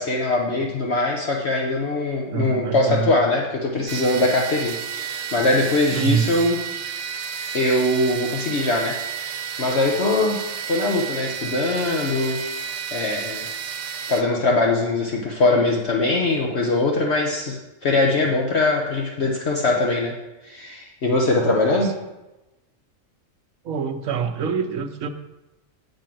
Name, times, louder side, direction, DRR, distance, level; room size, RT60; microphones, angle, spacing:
voice 1, 0.0-6.6 7.5-10.4 10.7-12.5 12.9-13.5 14.1-20.1 20.4-21.9, left 2 dB, 55° left, -1 dB, 1.2 m, -22 dB
voice 2, 2.3-3.1 5.9-6.3 21.4-21.9 23.6-25.1, right 7 dB, 85° right, 6 dB, 1.2 m, -26 dB
sound 1, 3.9-14.2, right 7 dB, 60° right, 0.7 m, -31 dB
7.7 x 5.4 x 7.5 m, 1.0 s
omnidirectional pair, 1.4 m